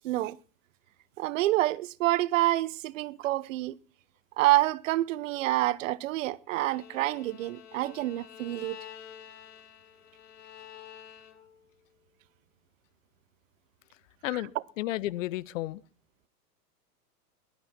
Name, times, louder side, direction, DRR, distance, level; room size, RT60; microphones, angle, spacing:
voice 1, 0.0-0.4 1.2-3.7 4.4-8.8, right 17 dB, 55° right, 0.8 m, -27 dB
Bowed string instrument, 6.5-11.7, left 9 dB, 75° left, 2.3 m, -49 dB
voice 2, 14.2-15.8, left 16 dB, 55° left, 0.7 m, -33 dB
18.5 x 12.0 x 4.4 m
hypercardioid pair, 120°, 47 cm